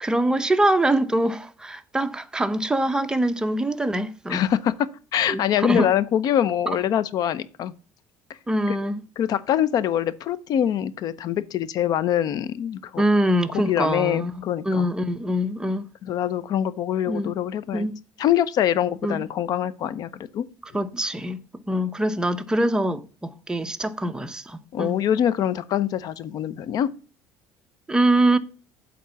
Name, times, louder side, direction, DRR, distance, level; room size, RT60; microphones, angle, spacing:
voice 1, 0.0-4.4 5.3-5.9 8.5-9.0 13.0-15.9 17.1-17.3 17.7-18.0 19.0-19.2 20.7-21.4 21.7-24.9 27.9-28.4, right 1 dB, 10° right, 0.7 m, -24 dB
voice 2, 4.3-7.7 8.7-8.8 9.2-13.0 13.5-14.9 16.0-17.9 18.2-20.5 24.7-26.9, left 10 dB, 55° left, 0.6 m, -24 dB
8.4 x 3.8 x 6.9 m
cardioid pair, 110°, 8 cm